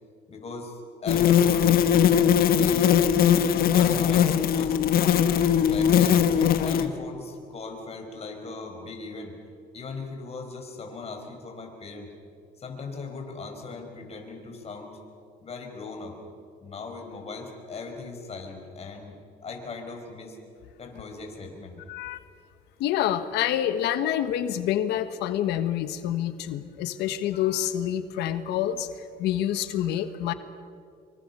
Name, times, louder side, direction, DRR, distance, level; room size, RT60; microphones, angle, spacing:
voice 1, 0.3-2.9 3.5-4.8 5.5-9.4 9.7-12.1 12.6-15.0 15.4-16.2 16.6-19.2 19.4-20.4 20.8-21.8, left 4 dB, 40° left, 3 dB, 4.8 m, -39 dB
sound 1, 1.1-6.9, left 9 dB, 60° left, 1.3 m, -20 dB
voice 2, 21.9-22.2 22.8-28.9 29.2-30.3, left 11 dB, 85° left, 11 dB, 1.2 m, -27 dB
26.0 x 24.5 x 5.5 m, 2.4 s
cardioid pair, 110°, 17 cm